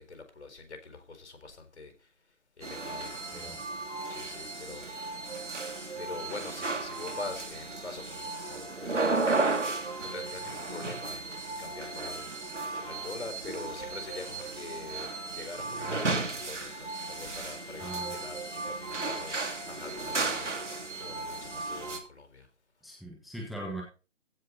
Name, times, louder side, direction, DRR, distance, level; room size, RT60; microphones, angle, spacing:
voice 1, 0.0-1.9 2.6-3.7 4.1-4.9 6.0-9.8 10.1-20.5 21.0-22.5, left 3 dB, 60° left, 4.2 m, -44 dB
sound 1, 2.6-22.0, right 3 dB, 70° right, 3.0 m, -34 dB
voice 2, 17.8-18.1 22.8-23.8, right 1 dB, ahead, 1.3 m, -40 dB
15.5 x 8.1 x 4.1 m
figure-of-eight pair, 145°, 37 cm